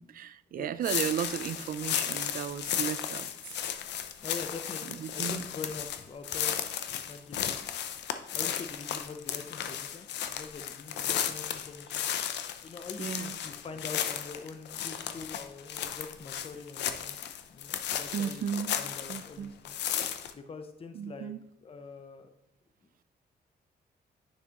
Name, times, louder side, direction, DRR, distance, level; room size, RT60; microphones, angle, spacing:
voice 1, 0.0-3.3 5.0-5.4 13.0-13.3 18.1-18.8 19.1-19.5 21.0-21.4, right 9 dB, 55° right, 14 dB, 0.4 m, -34 dB
sound 1, 0.8-19.3 19.7-20.3, left 9 dB, 90° left, 0.6 m, -34 dB
voice 2, 4.2-8.0 8.3-12.0 12.6-17.2 17.5-19.8 20.3-21.3 21.6-22.3, left 4 dB, 35° left, 7 dB, 0.7 m, -44 dB
9.6 x 5.9 x 3.0 m, 0.76 s
cardioid pair, 100°, 17 cm